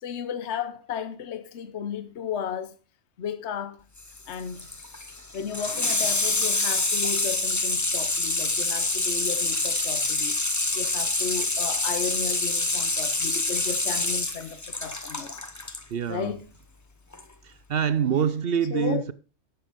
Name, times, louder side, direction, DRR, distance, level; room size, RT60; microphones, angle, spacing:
voice 1, 0.0-2.8 3.2-3.8 4.3-4.7 5.3-15.4 16.1-16.4 18.7-19.0, left 7 dB, 65° left, 1.1 m, -34 dB
Water tap faucet / Sink (filling or washing), 4.0-15.8 17.1-17.2, left 2 dB, 15° left, 0.7 m, -26 dB
voice 2, 15.9-16.3 17.4-19.1, right 8 dB, 60° right, 0.8 m, -25 dB
11.0 x 7.3 x 5.1 m
omnidirectional pair, 1.3 m